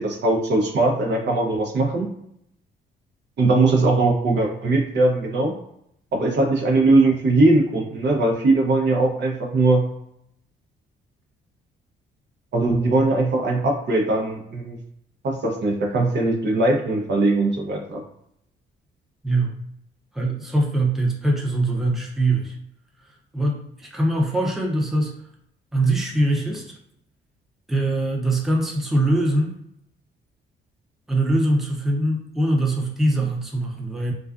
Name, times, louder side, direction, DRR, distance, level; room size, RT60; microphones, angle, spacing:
voice 1, 0.0-2.1 3.4-5.5 6.1-9.9 12.5-14.8 15.2-18.0, right 2 dB, 60° right, 0 dB, 0.7 m, -20 dB
voice 2, 20.1-22.6 23.3-25.1 25.7-26.8 27.7-29.5 31.1-34.1, right 1 dB, ahead, -2 dB, 0.6 m, -22 dB
2.4 x 2.3 x 2.4 m, 0.74 s
cardioid pair, 90°, 20 cm